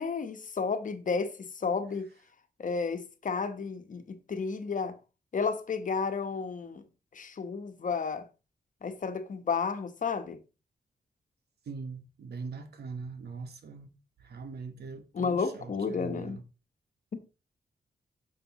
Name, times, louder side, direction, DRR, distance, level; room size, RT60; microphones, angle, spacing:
voice 1, 0.0-2.1 2.6-5.0 5.3-6.8 7.1-8.2 8.8-10.4 15.1-16.4 17.1-17.2, left 5 dB, 50° left, 1.1 m, -32 dB
voice 2, 11.7-13.9 14.2-16.4, right 4 dB, 80° right, 1.3 m, -41 dB
9.3 x 6.7 x 3.0 m
wide cardioid pair, 110°, 17 cm